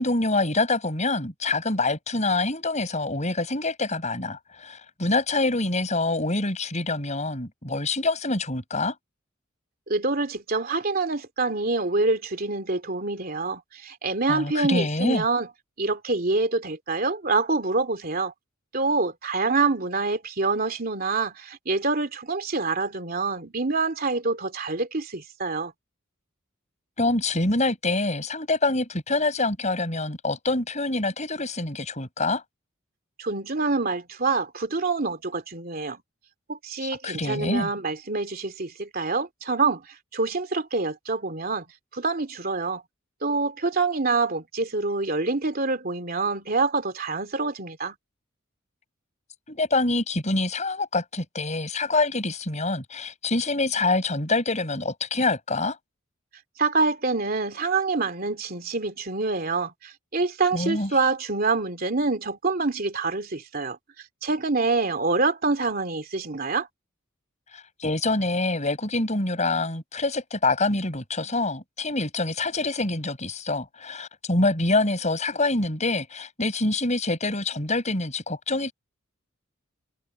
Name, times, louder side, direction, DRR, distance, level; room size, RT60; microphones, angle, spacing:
voice 1, 0.0-8.9 14.3-15.2 27.0-32.4 36.8-37.7 49.5-55.8 60.5-60.9 67.8-78.7, left 2 dB, 35° left, 7.6 m, -26 dB
voice 2, 9.9-15.5 15.8-18.3 18.7-25.7 33.2-36.0 36.5-41.6 41.9-42.8 43.2-47.9 56.6-63.8 64.2-66.7, right 3 dB, 45° right, 2.9 m, -26 dB
head